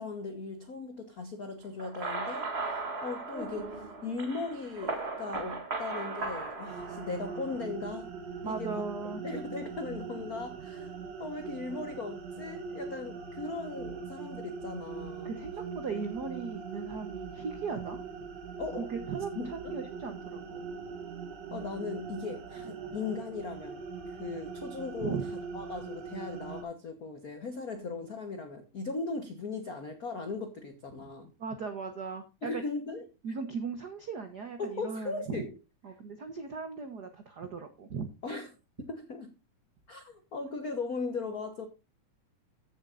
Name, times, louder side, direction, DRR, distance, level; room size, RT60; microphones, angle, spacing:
voice 1, 0.0-8.1 8.4-8.8 9.2-15.4 18.6-18.9 19.3-19.8 21.5-31.3 32.4-33.0 34.6-35.5 38.2-38.5 38.8-39.3 39.9-41.7, left 3 dB, 75° left, 0.8 m, -38 dB
sound 1, 1.8-7.6, right 3 dB, 30° right, 1.3 m, -37 dB
sound 2, 6.7-26.6, right 5 dB, 45° right, 1.7 m, -41 dB
voice 2, 8.4-9.2 15.2-18.0 18.8-19.3 19.7-20.6 25.0-25.3 31.4-32.6 33.2-35.4 35.8-38.1, right 5 dB, 75° right, 0.9 m, -37 dB
15.0 x 7.3 x 2.5 m
omnidirectional pair, 3.5 m